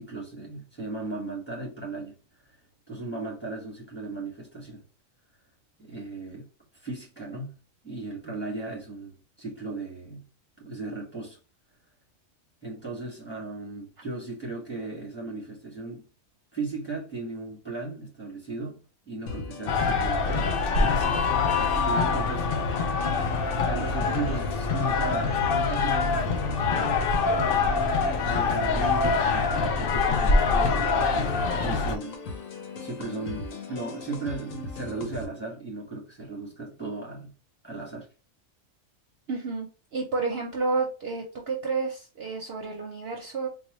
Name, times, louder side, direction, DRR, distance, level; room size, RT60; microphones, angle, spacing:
voice 1, 0.0-2.2 2.9-4.8 5.8-6.5 6.8-7.6 7.8-10.2 10.6-11.4 12.6-16.0 16.5-21.2 21.5-22.5 23.5-27.0 27.5-27.8 28.2-31.4 31.6-32.1 32.8-37.3 37.6-38.1, right 2 dB, 10° left, 1.4 m, -36 dB
sound 1, 19.3-35.3, left 3 dB, 80° left, 1.1 m, -39 dB
sound 2, 19.7-32.0, left 4 dB, 60° left, 0.6 m, -24 dB
voice 2, 39.3-39.7 39.9-43.5, right 4 dB, 55° right, 0.8 m, -30 dB
4.0 x 2.2 x 3.0 m
omnidirectional pair, 1.4 m